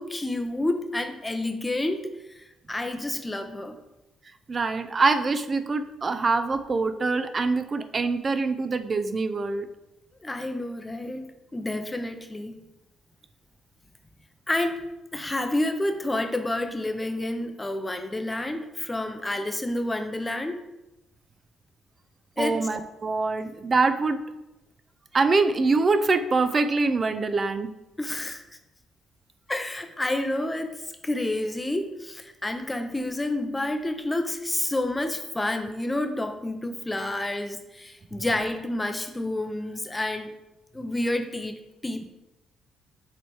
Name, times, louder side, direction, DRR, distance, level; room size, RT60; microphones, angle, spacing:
voice 1, 0.0-3.8 10.2-12.6 14.5-14.8 15.1-20.6 22.4-22.6 28.0-28.4 29.5-30.7 31.0-40.3 40.7-42.1, left 1 dB, 15° left, 8 dB, 0.6 m, -29 dB
voice 2, 4.5-9.7 22.4-24.2 25.1-27.7, right 3 dB, 35° right, 10 dB, 0.5 m, -24 dB
6.6 x 3.2 x 4.6 m, 0.96 s
cardioid pair, 90°, 0 cm